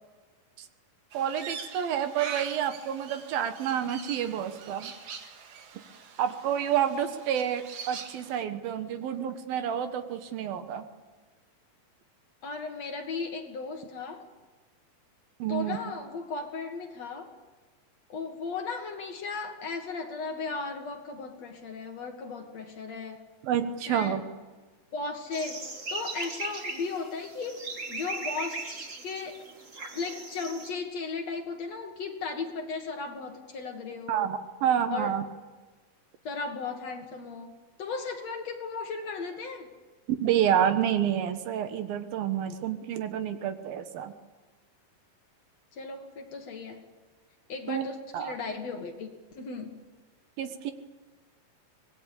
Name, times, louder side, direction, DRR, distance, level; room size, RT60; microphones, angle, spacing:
Crow, 1.1-8.4, right 6 dB, 55° right, 2.9 m, -43 dB
voice 1, 1.1-4.9 6.2-10.8 15.4-15.8 23.4-24.3 34.1-35.2 40.1-44.1 47.7-47.9 48.1-48.4 50.4-50.7, right 9 dB, 75° right, 9 dB, 3.2 m, -29 dB
voice 2, 12.4-14.3 15.5-17.3 18.1-23.3 23.9-24.2 24.9-25.6 25.9-27.6 27.9-28.7 29.0-29.4 29.9-34.3 34.9-35.2 36.2-39.7 45.7-46.8 47.5-49.8, left 4 dB, 50° left, 4 dB, 2.6 m, -36 dB
sound 1, 25.3-30.7, right 3 dB, 30° right, 1.5 m, -38 dB
25.0 x 20.0 x 8.6 m, 1.3 s
omnidirectional pair, 4.3 m